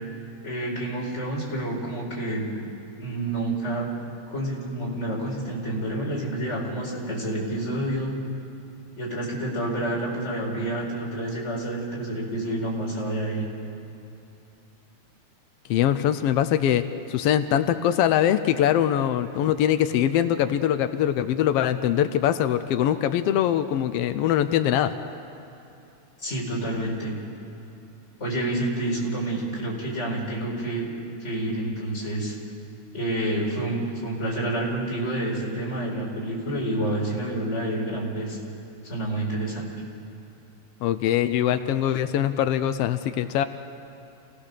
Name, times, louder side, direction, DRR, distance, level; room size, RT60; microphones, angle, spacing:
voice 1, 0.4-2.5 3.0-3.9 4.3-8.1 9.0-13.5 26.2-27.1 28.2-30.9 31.2-32.4 32.9-38.4 38.8-39.7, right 1 dB, 20° left, -3 dB, 4.8 m, -28 dB
voice 2, 15.7-16.8 17.1-24.9 40.8-43.4, left 10 dB, 90° left, 10 dB, 1.3 m, -22 dB
29.0 x 18.5 x 6.7 m, 3.0 s
omnidirectional pair, 3.6 m